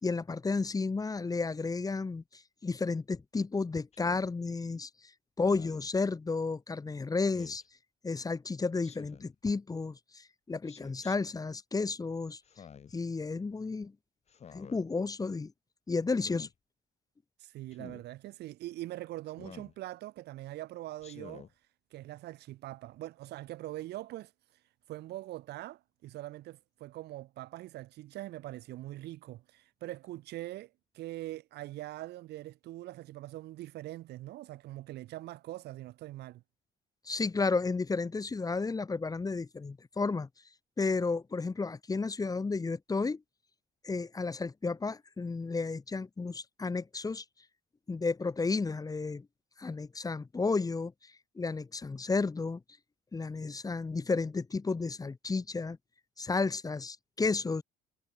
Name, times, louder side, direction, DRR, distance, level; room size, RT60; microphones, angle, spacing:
voice 1, 0.0-4.9 5.4-7.6 8.0-12.4 12.9-13.9 14.5-15.5 15.9-16.5 37.0-40.3 40.8-43.2 43.8-47.2 47.9-49.3 49.6-52.6 53.1-55.8 56.2-57.6, left 4 dB, 20° left, 2.7 m, -32 dB
Speech synthesizer, 3.9-4.3 5.4-5.9 7.3-7.6 8.8-9.3 10.7-11.2 12.4-13.0 14.3-14.8 16.1-16.5 17.7-18.0 19.4-19.8 21.0-21.5, left 7 dB, 40° left, 2.1 m, -50 dB
voice 2, 17.4-21.5 21.9-24.6 24.9-36.4, right 16 dB, 75° right, 4.9 m, -43 dB
cardioid pair, 110°, 17 cm